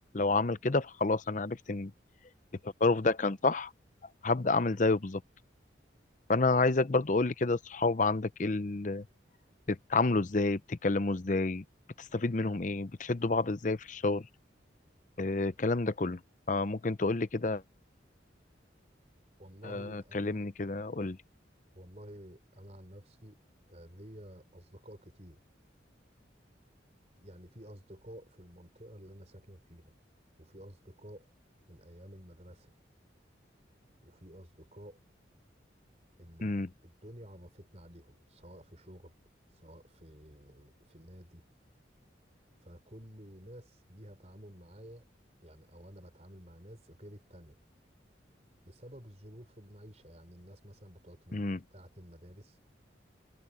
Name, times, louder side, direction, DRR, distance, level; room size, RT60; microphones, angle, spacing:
voice 1, 0.1-1.9 2.6-3.7 4.2-5.2 6.3-9.0 9.7-11.6 12.0-14.3 15.2-16.2 16.5-17.6 19.6-21.2 36.4-36.7 51.3-51.6, left 3 dB, 40° left, 0.7 m, -29 dB
voice 2, 19.4-20.5 21.7-23.4 23.7-25.4 27.2-29.9 30.4-31.3 31.7-32.8 34.0-35.0 36.2-36.6 36.8-39.1 39.5-41.4 42.6-45.0 45.4-47.6 48.6-52.6, equal, 35° right, 4.4 m, -51 dB
head